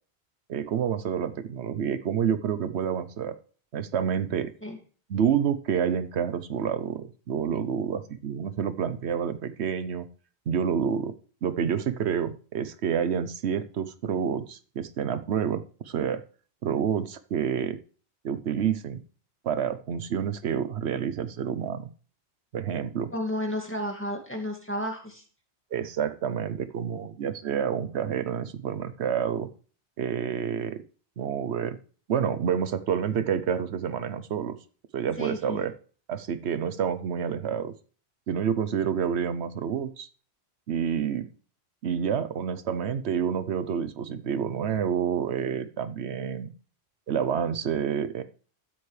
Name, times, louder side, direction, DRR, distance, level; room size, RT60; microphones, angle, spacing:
voice 1, 0.5-3.3 3.7-4.5 5.1-10.1 10.5-11.1 11.4-16.2 16.6-17.8 18.2-19.0 19.4-21.9 22.5-23.1 25.7-29.5 30.0-30.8 31.2-31.8 32.1-34.6 34.9-35.7 36.1-37.7 38.3-40.1 40.7-41.3 41.8-46.5 47.1-48.2, right 8 dB, 80° right, 11 dB, 1.0 m, -28 dB
voice 2, 23.1-25.2 35.2-35.6, equal, 10° left, 1 dB, 2.0 m, -32 dB
13.0 x 9.0 x 3.2 m, 0.41 s
omnidirectional pair, 1.1 m